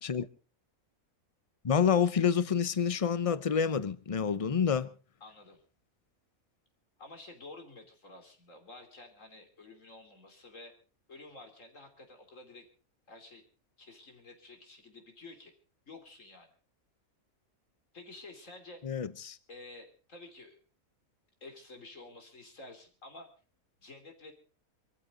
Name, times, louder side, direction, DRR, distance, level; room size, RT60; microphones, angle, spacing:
voice 1, 1.6-4.9 18.8-19.4, left 7 dB, 30° left, 0.7 m, -28 dB
voice 2, 5.2-5.6 7.0-10.7 11.1-12.7 13.1-13.4 13.8-15.5 15.9-16.5 17.9-18.8 19.5-20.6 21.4-23.3 23.8-24.3, left 2 dB, 65° left, 3.5 m, -51 dB
24.5 x 14.5 x 3.8 m
omnidirectional pair, 1.5 m